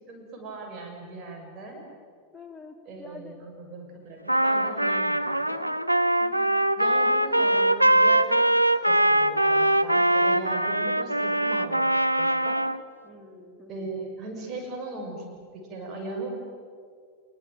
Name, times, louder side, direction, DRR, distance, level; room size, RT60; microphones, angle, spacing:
voice 1, 0.1-1.8 2.8-5.6 6.7-8.5 8.8-11.8 12.2-12.6 13.7-16.4, right 3 dB, 30° right, 1 dB, 6.6 m, -38 dB
voice 2, 2.3-3.4 6.2-6.7 13.0-13.9, left 3 dB, 5° left, 0 dB, 3.8 m, -47 dB
Trumpet, 4.3-12.8, right 1 dB, 90° right, 0.7 m, -22 dB
27.5 x 20.5 x 9.1 m, 2.1 s
figure-of-eight pair, 90°, 0 cm